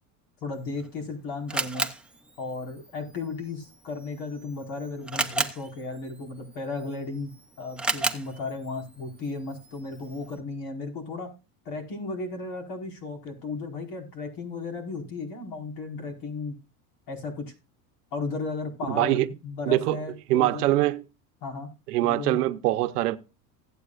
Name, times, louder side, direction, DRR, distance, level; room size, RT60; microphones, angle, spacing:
voice 1, 0.4-1.9 2.4-7.3 7.6-11.3 11.6-16.6 17.1-17.5 18.1-20.7 21.4-21.7 22.0-22.4, left 3 dB, 60° left, 4.8 m, -35 dB
Camera, 0.5-10.4, right 2 dB, ahead, 0.9 m, -35 dB
voice 2, 18.9-19.3 19.7-20.0 20.3-21.0 21.9-23.2, right 15 dB, 85° right, 0.9 m, -23 dB
16.5 x 8.6 x 2.5 m
supercardioid pair, 110°, 46 cm